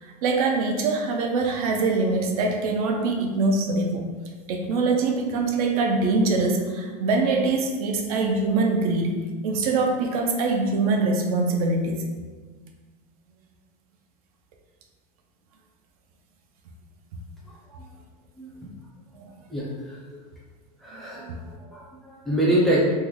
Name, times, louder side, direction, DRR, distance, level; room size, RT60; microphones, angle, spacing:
voice 1, 0.0-4.0 4.5-9.2 9.4-12.1 19.1-19.3 20.9-21.4, right 3 dB, 70° right, 2 dB, 0.5 m, -24 dB
voice 2, 19.5-20.2 20.8-22.8, right 1 dB, ahead, -7 dB, 0.5 m, -26 dB
3.2 x 2.1 x 3.6 m, 1.4 s
supercardioid pair, 170°, 19 cm